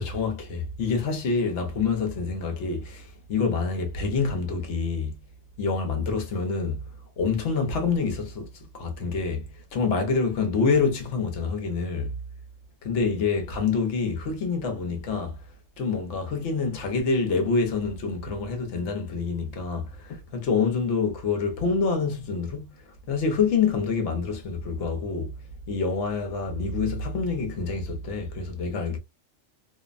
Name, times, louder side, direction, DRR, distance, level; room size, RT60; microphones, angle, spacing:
voice 1, 0.0-5.2 5.6-6.8 7.2-12.2 12.8-15.4 15.8-22.7 23.1-29.0, left 4 dB, 70° left, 1.0 m, -27 dB
2.6 x 2.1 x 2.3 m
omnidirectional pair, 1.3 m